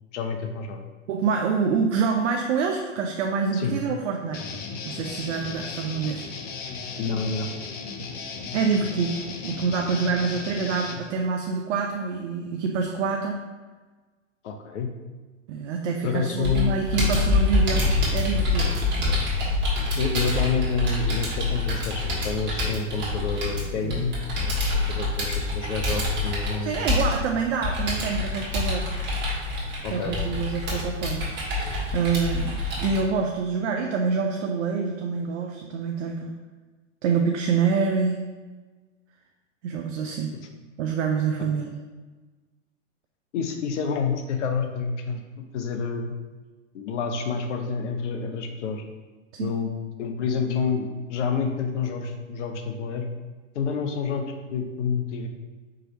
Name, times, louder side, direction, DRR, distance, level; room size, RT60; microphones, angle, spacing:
voice 1, 0.1-0.8 3.5-3.7 7.0-7.5 14.4-14.9 16.0-16.7 20.0-24.1 24.7-26.9 29.8-30.2 43.3-45.2 45.5-46.1 46.7-48.8 49.4-49.7 50.0-53.1 53.5-54.2 54.5-55.3, left 5 dB, 65° left, 5 dB, 0.7 m, -28 dB
voice 2, 1.1-4.4 4.8-6.2 8.5-9.2 9.4-13.5 15.5-18.7 23.8-24.1 26.6-28.9 29.9-36.4 37.0-38.2 39.6-40.3 40.8-41.7 49.3-49.5, right 5 dB, 65° right, 2 dB, 0.5 m, -26 dB
Guitar, 4.3-11.0, left 5 dB, 25° left, 0.4 m, -36 dB
Computer keyboard, 16.4-33.0, left 2 dB, 30° right, 1.5 m, -26 dB
4.8 x 3.0 x 2.9 m, 1.3 s
hypercardioid pair, 95°, 38 cm